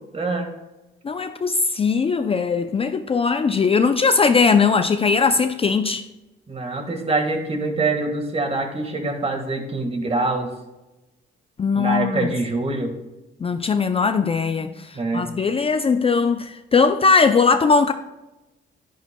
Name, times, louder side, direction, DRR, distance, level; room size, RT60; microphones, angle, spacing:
voice 1, 0.1-0.5 6.5-10.5 11.7-12.9 14.6-15.3, right 3 dB, 30° right, 1.7 m, -25 dB
voice 2, 1.0-6.0 11.6-12.3 13.4-17.9, left 5 dB, 30° left, 0.4 m, -19 dB
10.5 x 10.0 x 2.2 m
cardioid pair, 90°, 20 cm